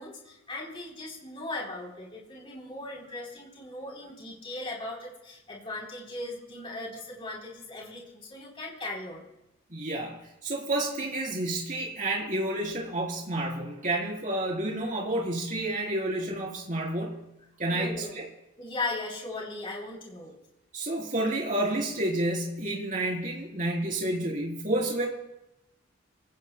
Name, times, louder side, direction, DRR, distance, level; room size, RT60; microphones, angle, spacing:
voice 1, 0.0-9.3 17.7-18.1 18.6-20.4, left 2 dB, 30° left, -2 dB, 3.9 m, -38 dB
voice 2, 9.7-17.2 17.6-18.2 20.7-25.1, right 1 dB, 40° right, -2 dB, 4.0 m, -30 dB
26.5 x 17.0 x 2.3 m, 0.89 s
head